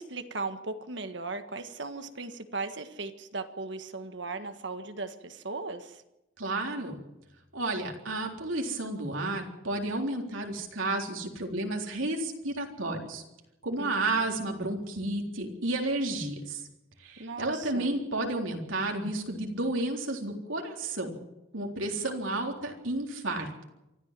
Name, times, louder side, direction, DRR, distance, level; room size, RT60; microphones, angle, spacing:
voice 1, 0.0-6.0 13.8-13.9 17.2-18.0, right 3 dB, 60° right, 8 dB, 1.6 m, -37 dB
voice 2, 6.4-7.0 7.5-13.2 13.6-16.7 17.0-21.1 21.5-23.5, right 2 dB, 80° right, 2 dB, 3.9 m, -32 dB
24.5 x 14.5 x 7.6 m, 0.93 s
head